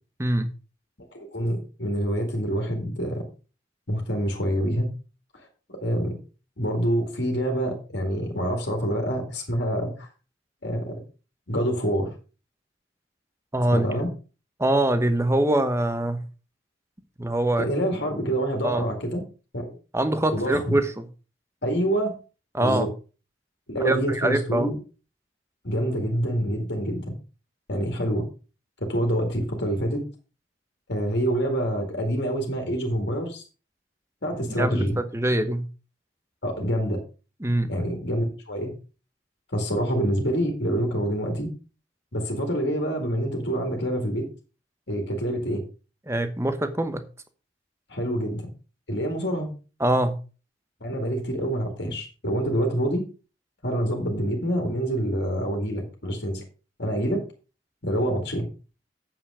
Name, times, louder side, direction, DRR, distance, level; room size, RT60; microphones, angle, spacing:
voice 1, 0.2-0.5 13.5-13.9 14.6-16.2 17.2-17.7 18.6-18.8 19.9-21.0 22.5-22.9 23.8-24.7 34.6-35.7 37.4-37.7 46.1-47.0 49.8-50.2, right 1 dB, 15° right, 10 dB, 0.9 m, -23 dB
voice 2, 1.1-3.2 3.9-4.9 5.7-6.1 6.6-10.1 10.6-10.9 11.5-12.1 13.7-14.1 17.6-19.2 19.5-19.7 20.3-20.8 21.6-22.2 22.6-22.9 23.7-24.8 25.6-27.1 27.7-28.2 28.8-30.0 30.9-33.4 34.2-35.0 36.4-37.0 37.7-38.7 39.5-41.5 42.1-44.3 44.9-45.6 47.9-48.5 48.9-49.5 50.8-53.0 53.6-56.4 56.8-57.2 57.8-58.5, equal, 60° left, 2 dB, 2.2 m, -26 dB
8.1 x 7.4 x 4.9 m, 0.34 s
head